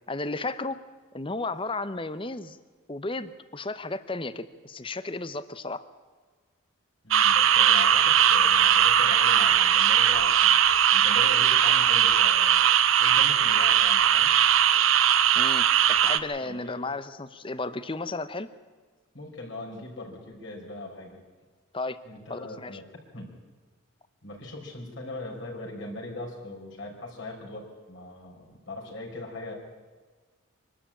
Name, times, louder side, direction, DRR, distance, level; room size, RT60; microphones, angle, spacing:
voice 1, 0.1-0.8 1.1-2.6 2.9-5.8 15.3-18.5 21.7-22.0 22.3-22.8, left 3 dB, 25° left, 14 dB, 0.7 m, -33 dB
voice 2, 7.0-12.6 12.9-14.3 16.4-16.8 19.1-21.2 22.0-22.8 23.1-23.3 24.2-29.5, left 2 dB, 55° left, -1 dB, 4.7 m, -40 dB
sound 1, 7.1-16.2, right 9 dB, 70° right, 0.8 m, -20 dB
24.5 x 12.5 x 8.8 m, 1.4 s
head